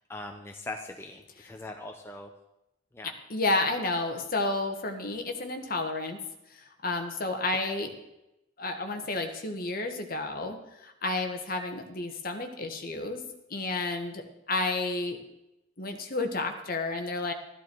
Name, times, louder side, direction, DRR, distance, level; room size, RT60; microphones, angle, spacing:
voice 1, 0.0-2.3 2.9-3.1 7.6-7.7, left 2 dB, 10° left, 2 dB, 0.8 m, -41 dB
voice 2, 3.0-6.2 6.5-7.9 8.6-13.2 13.5-15.2 15.8-17.3, left 2 dB, 45° left, 5 dB, 1.5 m, -31 dB
13.5 x 13.0 x 4.7 m, 0.90 s
head